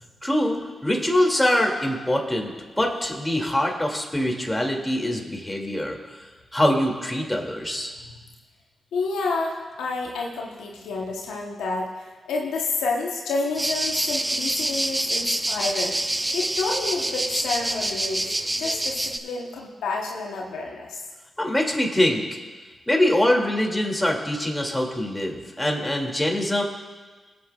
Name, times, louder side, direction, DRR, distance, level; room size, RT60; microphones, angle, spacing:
voice 1, 0.2-6.0 6.5-7.9 21.4-22.2 22.9-26.6, left 1 dB, 10° left, 0 dB, 2.5 m, -23 dB
voice 2, 8.9-21.0, left 3 dB, 90° left, -1 dB, 1.0 m, -29 dB
sound 1, 13.5-19.2, right 1 dB, 20° right, 0.7 m, -26 dB
23.0 x 7.9 x 2.4 m, 1.4 s
supercardioid pair, 40°, 0 cm